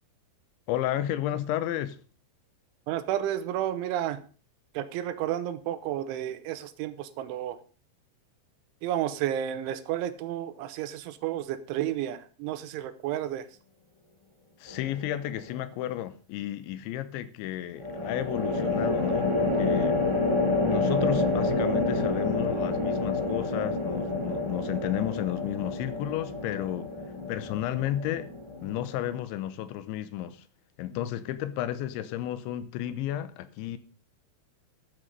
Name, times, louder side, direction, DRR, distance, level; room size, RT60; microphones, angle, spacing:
voice 1, 0.7-2.0 14.6-20.0 20.6-26.9 27.3-28.3 28.6-30.4 30.8-33.8, left 12 dB, 80° left, 3.1 m, -32 dB
voice 2, 2.9-4.2 4.7-7.6 8.8-13.5, right 11 dB, 90° right, 3.3 m, -31 dB
sound 1, 14.7-15.2 17.8-29.2, left 2 dB, 20° right, 0.7 m, -28 dB
13.5 x 8.2 x 5.3 m
omnidirectional pair, 5.5 m